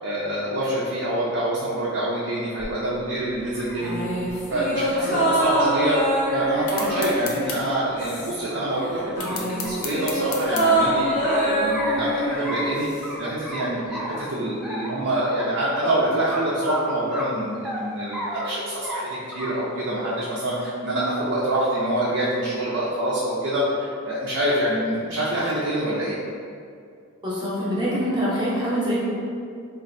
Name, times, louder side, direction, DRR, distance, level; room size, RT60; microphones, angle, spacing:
voice 1, 0.0-4.0 4.5-9.0 9.3-12.9 13.2-26.2, right 1 dB, 60° right, -7 dB, 0.5 m, -26 dB
sound 1, 2.6-2.7 3.3-4.0 5.0-5.1 5.5-5.6 6.0-6.1 6.6-7.0 8.2-8.8 9.2-9.3 9.6-10.9 11.3-12.0 12.4-12.7 13.0-13.2 13.5-14.3 14.6-15.0 15.4-15.5 15.8-15.9 16.3-16.4 16.7-16.8 17.1-17.8 18.1-18.5 18.8-19.0 19.3-19.7 20.1-20.6 21.4-21.9, equal, 5° right, 0.3 m, -34 dB
sound 2, 3.8-8.6 8.8-13.2 13.5-13.6, right 1 dB, 35° left, 0.7 m, -25 dB
sound 3, 6.7-7.6 9.2-10.7, left 5 dB, 75° left, 0.5 m, -32 dB
voice 2, 27.2-29.0, equal, 20° right, -7 dB, 0.7 m, -24 dB
4.0 x 2.5 x 2.5 m, 2.3 s
head